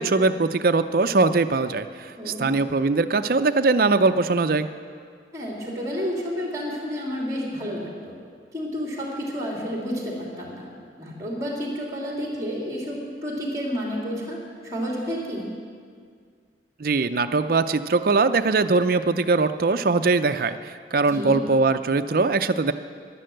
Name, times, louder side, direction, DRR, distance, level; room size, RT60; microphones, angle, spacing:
voice 1, 0.0-4.7 16.8-22.7, right 3 dB, 50° right, 9 dB, 0.5 m, -21 dB
voice 2, 2.2-2.5 5.3-8.1 8.5-10.7 11.0-14.4 14.6-15.5 21.0-21.4, equal, 20° right, -2 dB, 2.9 m, -30 dB
11.0 x 11.0 x 7.7 m, 2.1 s
head